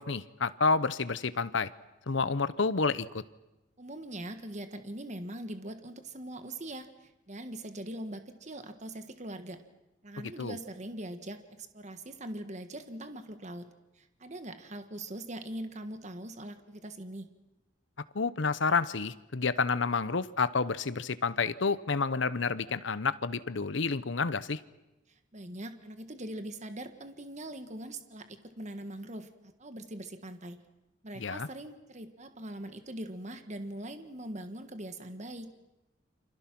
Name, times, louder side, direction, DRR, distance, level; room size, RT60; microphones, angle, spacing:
voice 1, 0.0-1.7 2.1-3.2 10.4-10.5 18.1-24.6 31.2-31.5, left 4 dB, 65° left, 15 dB, 0.9 m, -29 dB
voice 2, 3.8-9.6 10.0-13.7 14.0-17.3 25.3-29.3 29.6-30.6 31.0-35.5, right 1 dB, 35° right, 8 dB, 1.5 m, -42 dB
29.0 x 26.0 x 6.1 m, 0.97 s
head